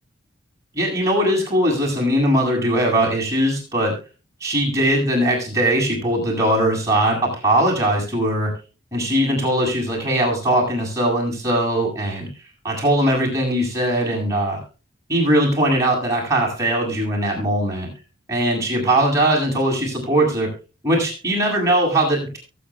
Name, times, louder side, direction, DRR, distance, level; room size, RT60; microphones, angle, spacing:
voice 1, 0.7-3.9 4.4-8.5 8.9-12.3 12.6-14.6 15.1-17.9 18.3-20.5 20.8-22.4, right 1 dB, 15° right, -2 dB, 7.7 m, -20 dB
23.0 x 9.4 x 2.3 m, 0.32 s
head